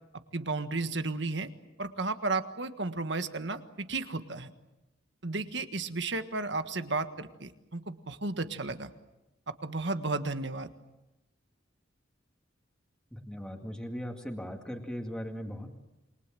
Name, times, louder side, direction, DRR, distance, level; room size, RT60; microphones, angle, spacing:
voice 1, 0.3-1.5 1.8-4.5 5.2-8.9 9.6-10.7, right 3 dB, 60° right, 9 dB, 1.6 m, -33 dB
voice 2, 13.1-15.7, equal, 5° left, 2 dB, 2.2 m, -38 dB
28.0 x 23.5 x 7.7 m, 0.98 s
head